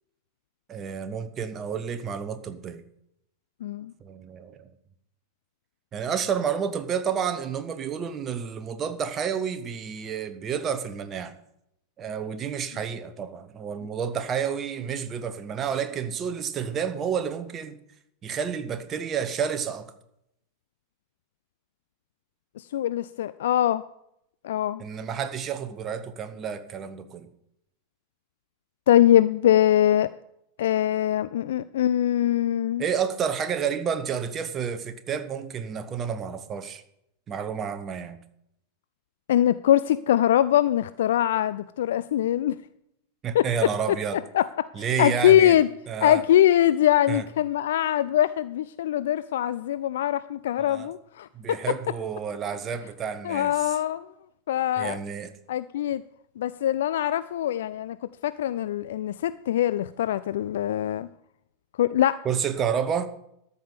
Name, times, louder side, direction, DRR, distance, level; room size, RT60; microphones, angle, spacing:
voice 1, 0.7-2.8 4.0-4.7 5.9-11.3 12.0-17.8 18.2-19.9 24.8-27.3 32.8-36.8 37.3-38.2 43.2-44.2 44.7-45.6 45.9-46.2 47.1-47.2 50.6-50.9 51.3-53.7 54.8-55.3 62.2-63.1, right 7 dB, 25° right, 9 dB, 0.9 m, -30 dB
voice 2, 3.6-3.9 22.6-23.8 24.4-24.8 28.9-30.1 30.6-32.8 39.3-42.6 43.3-43.7 44.3-44.7 45.0-45.7 46.0-51.6 53.2-54.1 54.5-55.0 55.5-56.0 56.4-58.0 58.2-61.1 61.8-62.2, left 12 dB, 60° left, 15 dB, 0.3 m, -22 dB
13.5 x 5.5 x 7.0 m, 0.78 s
figure-of-eight pair, 90°, 0 cm